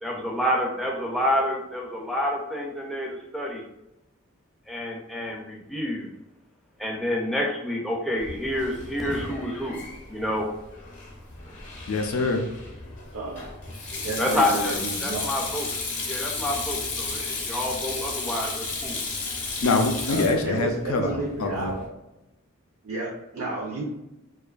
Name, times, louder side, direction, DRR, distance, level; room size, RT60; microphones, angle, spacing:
voice 1, 0.0-3.6 4.7-6.1 6.8-9.8 10.1-10.5 14.2-14.7 15.0-15.7 16.0-19.0, left 1 dB, ahead, 0 dB, 0.4 m, -28 dB
Sink (filling or washing), 8.2-21.9, left 3 dB, 40° left, 0.6 m, -34 dB
voice 2, 11.9-12.5 19.6-21.7, left 3 dB, 90° left, 4 dB, 0.4 m, -24 dB
voice 3, 13.1-13.5 14.0-15.3 20.1-21.8 22.8-23.9, right 2 dB, 80° right, -3 dB, 0.5 m, -31 dB
2.5 x 2.3 x 2.3 m, 0.91 s
head